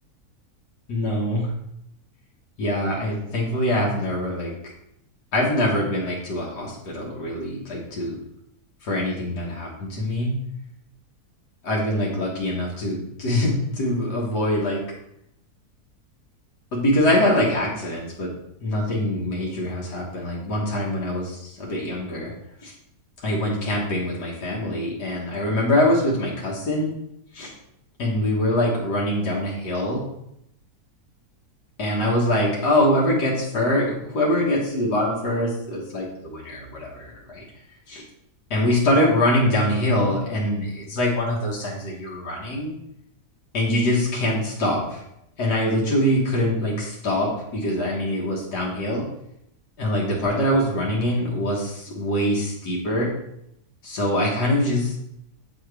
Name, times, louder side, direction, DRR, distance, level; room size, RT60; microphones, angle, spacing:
voice 1, 0.9-1.5 2.6-4.5 5.3-8.2 8.8-10.3 11.6-14.8 16.7-18.3 18.6-22.3 22.6-22.7 23.2-26.9 27.3-27.5 28.0-30.0 31.8-37.4 37.9-38.0 38.5-42.7 43.5-45.0 45.4-49.0 49.8-53.1 53.8-54.9, left 1 dB, 80° left, -4 dB, 1.8 m, -24 dB
7.8 x 4.3 x 3.3 m, 0.77 s
omnidirectional pair, 1.7 m